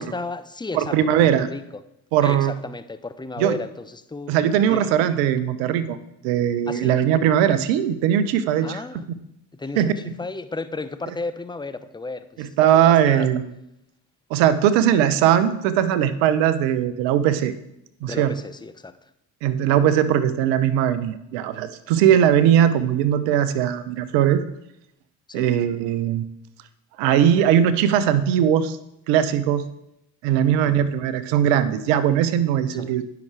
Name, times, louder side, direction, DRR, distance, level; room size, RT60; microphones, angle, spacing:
voice 1, 0.0-1.8 2.2-4.3 4.7-4.9 6.7-7.0 8.6-9.0 9.5-13.3 18.0-18.9 21.9-22.3 25.3-25.6 30.5-30.9 32.7-32.9, left 3 dB, 10° left, 11 dB, 0.7 m, -34 dB
voice 2, 0.7-1.5 2.1-2.5 3.4-3.5 4.3-6.0 6.2-8.8 9.8-10.0 12.4-13.4 14.3-17.5 18.0-18.3 19.4-24.4 25.3-26.2 27.0-28.8 29.1-29.6 30.2-33.0, right 10 dB, 70° right, 14 dB, 0.8 m, -19 dB
17.5 x 5.8 x 3.4 m, 0.84 s
figure-of-eight pair, 45°, 47 cm